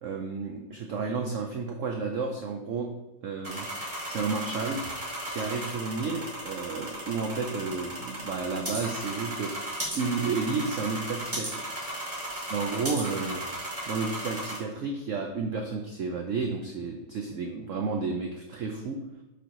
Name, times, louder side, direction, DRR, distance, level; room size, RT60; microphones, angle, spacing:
voice 1, 0.0-2.9 3.2-3.7 4.1-4.8 5.3-9.7 9.9-11.5 11.9-12.0 12.5-13.4 13.9-19.0, right 4 dB, 85° right, 3 dB, 0.6 m, -31 dB
sound 1, 3.4-14.6, right 1 dB, 15° right, 2.2 m, -36 dB
7.0 x 3.7 x 4.6 m, 1.1 s
omnidirectional pair, 2.1 m